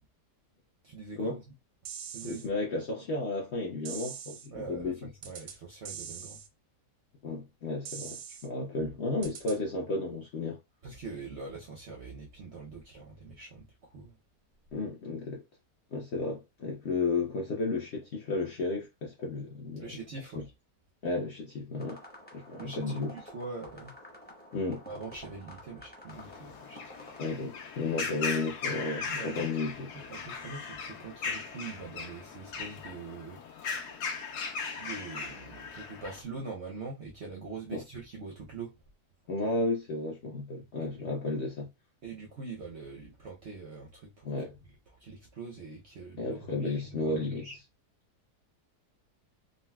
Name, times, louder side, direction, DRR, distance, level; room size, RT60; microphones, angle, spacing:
voice 1, 0.8-1.4 2.1-2.5 4.5-6.4 10.8-14.1 19.8-20.4 22.6-23.9 24.9-27.1 29.1-29.5 29.9-33.4 34.8-38.7 42.0-44.3 45.0-47.6, right 4 dB, 60° right, 0.7 m, -43 dB
sound 1, 1.9-2.5 3.9-4.5 5.2-5.6 5.9-6.5 7.9-8.5 9.2-9.6, right 8 dB, 90° right, 1.2 m, -42 dB
voice 2, 2.2-5.1 7.2-10.6 14.7-15.4 15.9-20.0 20.3-20.4 21.0-22.0 22.3-23.1 24.5-24.8 27.2-29.9 37.7-37.8 39.3-41.7 44.2-44.6 46.2-47.4, left 3 dB, 60° left, 0.7 m, -33 dB
sound 2, 21.8-27.2, equal, 10° left, 0.5 m, -50 dB
sound 3, 26.1-36.2, left 5 dB, 75° left, 1.3 m, -38 dB
3.9 x 2.2 x 2.2 m
omnidirectional pair, 1.8 m